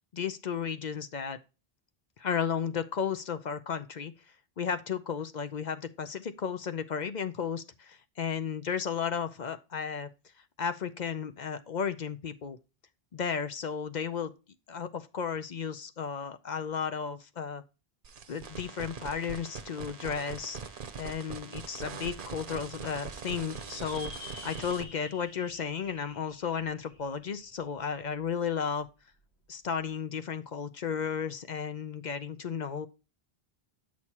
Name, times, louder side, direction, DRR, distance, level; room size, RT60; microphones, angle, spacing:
voice 1, 0.1-1.4 2.2-4.1 4.6-10.1 10.6-12.6 13.1-14.3 14.7-17.6 18.3-20.6 21.0-24.1 24.4-28.9 29.5-32.9, left 7 dB, 50° left, 0.6 m, -34 dB
sound 1, 18.0-24.8, right 5 dB, 55° right, 0.9 m, -42 dB
sound 2, 23.5-28.2, left 2 dB, 85° left, 3.2 m, -49 dB
8.6 x 6.3 x 2.9 m
omnidirectional pair, 1.1 m